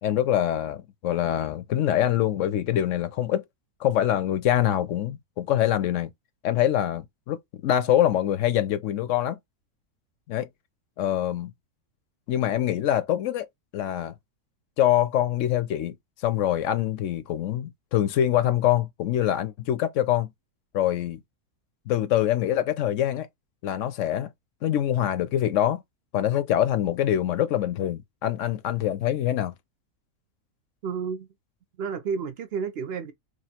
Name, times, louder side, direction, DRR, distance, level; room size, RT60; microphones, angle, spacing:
voice 1, 0.0-3.4 3.8-6.1 6.4-7.4 7.6-9.4 10.3-10.5 11.0-11.5 12.3-13.5 13.7-14.1 14.8-15.9 16.2-20.3 20.7-21.2 21.9-23.3 23.6-24.3 24.6-25.8 26.1-29.5, left 11 dB, 65° left, 0.8 m, -24 dB
voice 2, 30.8-31.3 31.8-33.1, right 6 dB, 60° right, 0.7 m, -31 dB
3.1 x 2.6 x 4.2 m
omnidirectional pair, 1.6 m